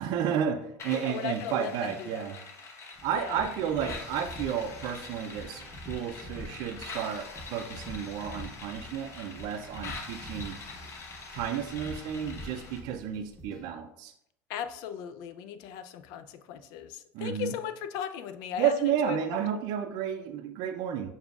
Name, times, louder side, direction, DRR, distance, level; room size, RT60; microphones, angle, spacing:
voice 1, 0.0-2.4 3.0-10.5 11.3-14.1 17.1-17.5 18.6-21.1, right 8 dB, 65° right, 6 dB, 0.4 m, -32 dB
sound 1, 0.8-12.8, left 4 dB, 40° left, 0.8 m, -44 dB
voice 2, 0.9-2.3 3.1-3.4 14.5-19.2, left 9 dB, 70° left, 10 dB, 0.4 m, -37 dB
sound 2, 2.9-13.7, equal, ahead, 1.0 m, -46 dB
6.7 x 2.4 x 2.3 m, 0.75 s
supercardioid pair, 90°, 7 cm